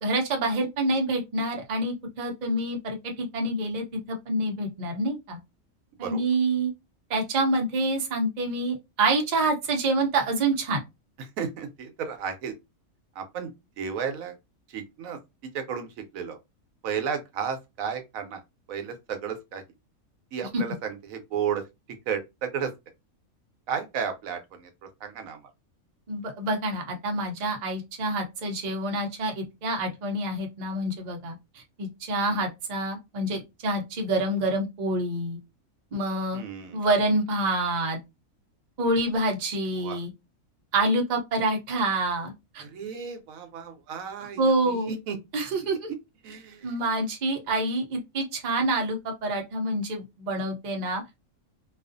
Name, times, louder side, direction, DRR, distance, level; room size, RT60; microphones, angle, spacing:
voice 1, 0.0-5.4 6.0-6.7 7.1-10.8 20.5-20.6 26.1-35.4 35.9-36.4 36.7-38.0 38.8-40.1 40.7-42.6 44.4-44.9 45.3-45.9 46.6-51.0, right 2 dB, 45° right, 0.6 m, -27 dB
voice 2, 11.2-12.5 13.2-14.4 14.7-15.9 16.1-16.4 16.8-18.4 18.7-19.6 20.3-21.6 22.1-22.7 23.7-25.4 32.3-32.4 36.3-36.8 39.8-40.0 42.6-45.2 46.2-46.7, right 7 dB, 75° right, 1.0 m, -33 dB
2.4 x 2.4 x 2.5 m
omnidirectional pair, 1.5 m